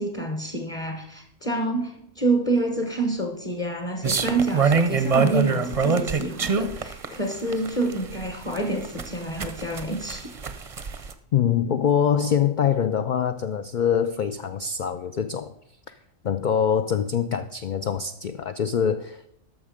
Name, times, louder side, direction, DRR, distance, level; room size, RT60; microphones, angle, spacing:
voice 1, 0.0-10.3, right 2 dB, 30° left, 3 dB, 1.1 m, -27 dB
sound 1, 4.0-11.1, right 5 dB, 40° right, 0.5 m, -24 dB
voice 2, 11.3-15.5 15.9-16.0 16.2-19.3, left 8 dB, 90° left, 10 dB, 0.4 m, -24 dB
12.5 x 6.2 x 5.0 m, 0.75 s
omnidirectional pair, 1.4 m